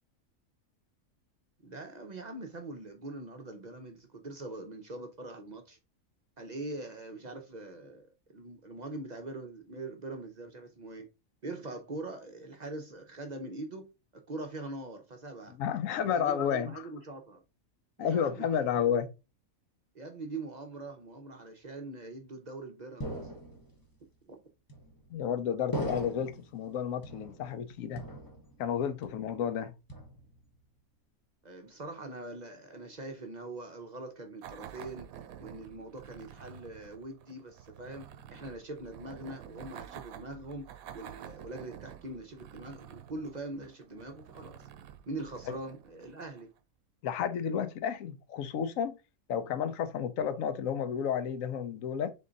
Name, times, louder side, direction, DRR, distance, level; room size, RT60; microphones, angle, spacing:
voice 1, 1.6-5.8 6.4-11.1 11.4-15.6 16.1-17.4 18.0-18.7 19.9-23.1 24.3-24.4 31.4-35.1 35.4-40.7 40.9-44.6 45.1-46.5, right 2 dB, 40° right, 0.7 m, -42 dB
voice 2, 15.6-16.7 18.0-19.1 25.1-28.0 28.6-29.7 47.0-49.0 49.3-52.1, left 8 dB, 75° left, 1.0 m, -31 dB
sound 1, 23.0-23.9 24.7-25.2 25.7-26.5 27.0-27.6 28.0-28.7 29.0-29.5 29.9-30.5, equal, 15° left, 0.9 m, -40 dB
sound 2, 34.4-46.6, right 10 dB, 85° right, 1.0 m, -49 dB
3.7 x 3.7 x 3.9 m
omnidirectional pair, 1.4 m